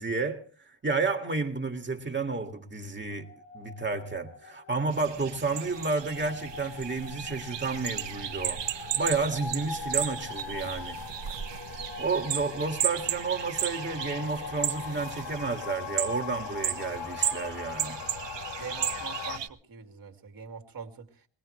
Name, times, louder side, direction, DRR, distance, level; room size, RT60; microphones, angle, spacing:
voice 1, 0.0-3.3 3.5-11.0 12.0-18.0, right 4 dB, 25° right, 2.1 m, -31 dB
sound 1, 3.1-19.4, left 6 dB, 90° left, 2.8 m, -41 dB
sound 2, 4.9-19.5, right 10 dB, 80° right, 1.3 m, -35 dB
voice 2, 18.6-21.1, right 6 dB, 50° right, 2.3 m, -43 dB
23.0 x 18.5 x 3.2 m
wide cardioid pair, 125°, 43 cm